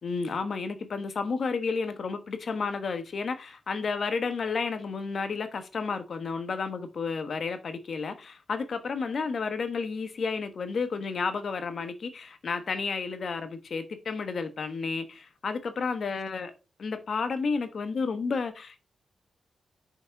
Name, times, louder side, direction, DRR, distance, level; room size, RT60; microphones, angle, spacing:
voice 1, 0.0-16.5 16.8-18.8, left 4 dB, 65° left, 1.2 m, -31 dB
6.1 x 5.3 x 4.6 m
cardioid pair, 55°, 0 cm